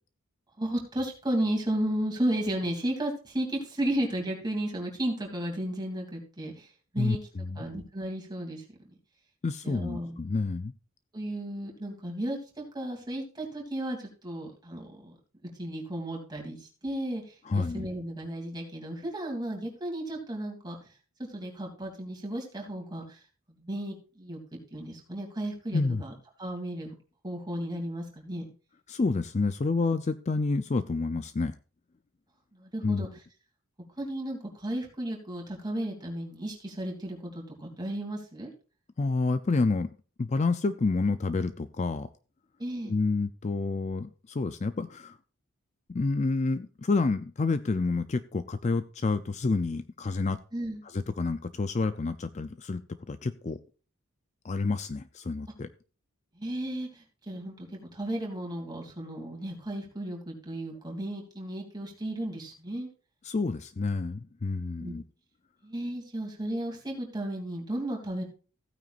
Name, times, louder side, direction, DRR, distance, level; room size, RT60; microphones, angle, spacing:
voice 1, 0.6-6.7 6.9-7.2 7.6-8.6 9.6-10.2 11.1-15.1 15.6-20.8 21.2-23.2 23.6-26.1 26.4-26.9 27.2-28.5 32.5-33.1 34.0-38.5 42.6-42.9 50.5-50.8 56.4-57.7 57.9-62.9 64.8-65.0 65.6-68.2, right 1 dB, 20° right, 0 dB, 2.8 m, -34 dB
voice 2, 7.0-7.7 9.4-10.7 17.4-17.9 25.7-26.0 28.9-31.5 32.8-33.1 39.0-39.9 40.2-42.1 42.8-45.2 45.9-50.4 50.8-52.8 53.1-53.6 54.4-55.7 63.2-65.0, left 3 dB, 35° left, 12 dB, 0.4 m, -29 dB
15.5 x 9.2 x 2.5 m, 0.36 s
head